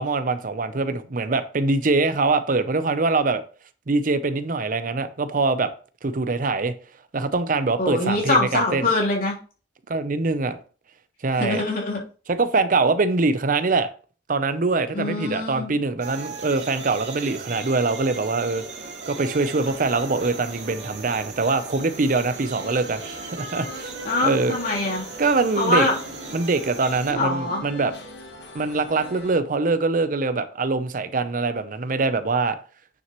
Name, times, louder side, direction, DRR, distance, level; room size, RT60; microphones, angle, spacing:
voice 1, 0.0-3.4 3.9-5.7 6.0-6.7 7.1-8.9 9.9-10.6 11.2-11.6 12.3-13.9 14.3-18.6 19.1-23.9 24.2-24.6 25.2-25.9 26.3-27.9 28.5-32.6, right 3 dB, 50° right, 0.6 m, -23 dB
voice 2, 7.8-9.3 11.3-12.0 14.9-15.7 24.0-25.0 25.6-25.9 27.1-27.6, left 2 dB, 55° left, 3.3 m, -23 dB
sound 1, 16.0-27.1, right 4 dB, 80° right, 2.4 m, -37 dB
sound 2, 19.3-29.4, left 2 dB, 70° left, 1.8 m, -43 dB
9.4 x 6.3 x 3.0 m
head